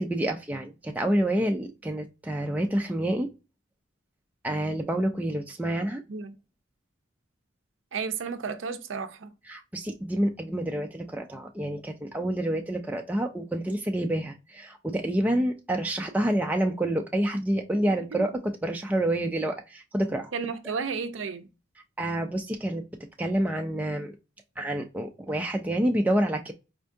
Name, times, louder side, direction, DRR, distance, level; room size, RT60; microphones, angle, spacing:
voice 1, 0.0-3.3 4.4-6.0 9.5-20.3 22.0-22.9 23.2-24.1 24.6-26.5, right 1 dB, 10° right, 0.3 m, -28 dB
voice 2, 7.9-9.3 17.9-18.3 20.3-21.5, right 5 dB, 65° right, 0.5 m, -33 dB
4.3 x 2.3 x 2.6 m
head